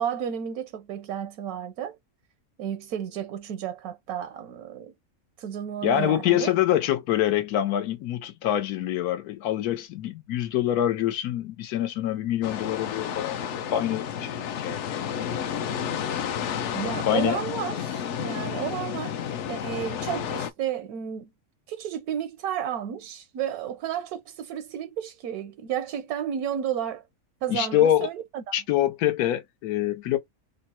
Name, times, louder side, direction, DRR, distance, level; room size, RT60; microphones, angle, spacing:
voice 1, 0.0-1.9 2.6-4.9 5.4-6.5 16.7-21.3 21.7-27.0 27.4-28.4, right 9 dB, 85° right, 1.1 m, -32 dB
voice 2, 5.8-15.0 17.1-17.4 27.5-28.1 28.5-30.2, left 11 dB, 85° left, 1.2 m, -25 dB
sound 1, 12.4-20.5, left 8 dB, 65° left, 0.8 m, -31 dB
3.7 x 2.1 x 4.2 m
omnidirectional pair, 1.6 m